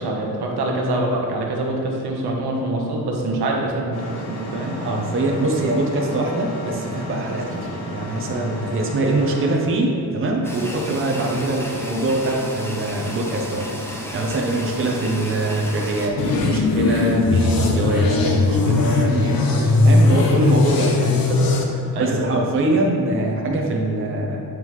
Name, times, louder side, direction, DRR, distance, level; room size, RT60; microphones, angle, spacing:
voice 1, 0.0-4.8 11.2-11.4 19.0-19.3 21.9-22.5, right 2 dB, 80° right, -1 dB, 1.1 m, -25 dB
sound 1, 3.9-9.6, left 1 dB, 80° left, 1.4 m, -32 dB
voice 2, 4.8-21.4 22.0-24.4, right 1 dB, 35° right, 0 dB, 0.7 m, -23 dB
sound 2, 10.4-16.1, equal, 5° left, 0.6 m, -33 dB
sound 3, 16.2-21.6, left 3 dB, 65° left, 0.8 m, -18 dB
7.5 x 5.4 x 3.2 m, 2.6 s
wide cardioid pair, 140°, 39 cm